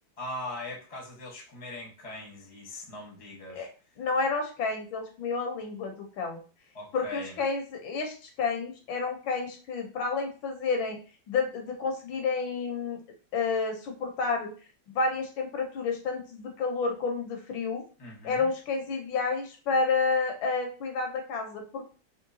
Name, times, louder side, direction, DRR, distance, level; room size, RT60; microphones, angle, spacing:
voice 1, 0.2-3.7 6.7-7.4 18.0-18.5, left 2 dB, 20° left, -2 dB, 0.9 m, -40 dB
voice 2, 4.0-6.4 6.9-11.0 11.3-13.0 13.3-14.5 14.9-17.8 18.2-21.8, left 4 dB, 75° left, 3 dB, 1.6 m, -30 dB
3.8 x 3.1 x 2.7 m, 0.37 s
omnidirectional pair, 2.2 m